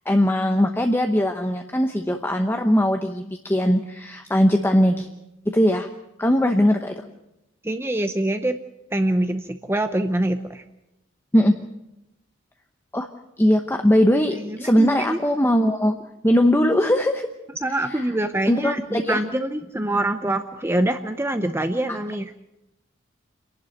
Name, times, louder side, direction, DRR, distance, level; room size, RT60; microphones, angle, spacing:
voice 1, 0.1-5.1 5.5-5.9 6.2-7.0 11.3-11.6 12.9-13.1 13.4-16.0 16.2-17.3 17.9-18.0 18.5-19.2 21.9-22.0, equal, 10° left, 5 dB, 0.9 m, -20 dB
voice 2, 7.6-8.6 8.9-10.6 14.3-15.2 17.6-22.4, right 1 dB, 10° right, 8 dB, 0.7 m, -25 dB
27.5 x 11.5 x 9.1 m, 0.92 s
head